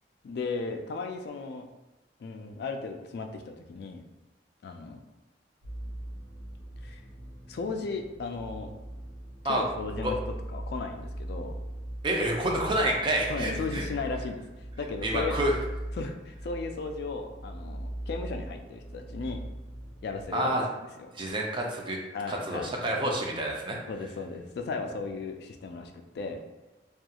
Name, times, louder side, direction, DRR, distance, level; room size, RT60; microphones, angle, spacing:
voice 1, 0.2-1.6 2.2-4.0 4.6-5.0 6.8-7.0 7.5-8.7 9.4-11.5 13.3-14.4 14.8-15.4 16.0-19.4 20.0-20.5 21.0-21.1 22.1-23.0 23.9-26.4, left 4 dB, 65° left, 4 dB, 0.3 m, -36 dB
sound 1, 5.6-20.2, right 1 dB, 80° right, 0.6 m, -40 dB
voice 2, 12.0-13.8 15.0-15.5 20.3-20.7 21.1-22.0 22.3-23.8, right 1 dB, 30° right, -1 dB, 0.4 m, -28 dB
2.4 x 2.3 x 2.8 m, 1.1 s
head